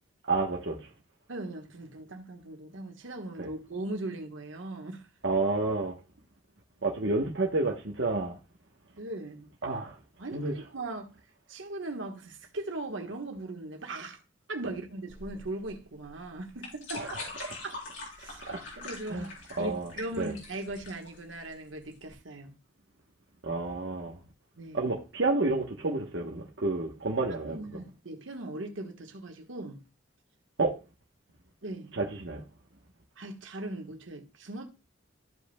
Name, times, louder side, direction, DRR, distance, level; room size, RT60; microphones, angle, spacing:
voice 1, 0.3-0.8 3.4-3.5 5.2-6.0 6.8-8.4 9.6-10.0 10.3-10.5 17.0-17.1 18.5-18.6 19.1-19.3 19.6-19.9 20.2-20.3 23.4-24.2 24.7-27.8 30.6-30.8 31.9-32.4, right 3 dB, 65° right, 1.1 m, -30 dB
voice 2, 1.3-5.1 9.0-9.5 10.2-11.1 11.5-14.2 14.5-17.8 18.2-18.4 18.8-19.3 19.6-22.6 24.6-24.9 27.4-29.8 31.6-31.9 33.2-34.6, right 2 dB, 90° right, 1.4 m, -39 dB
sound 1, 15.1-22.1, left 3 dB, 70° left, 3.8 m, -43 dB
14.0 x 5.1 x 2.3 m
head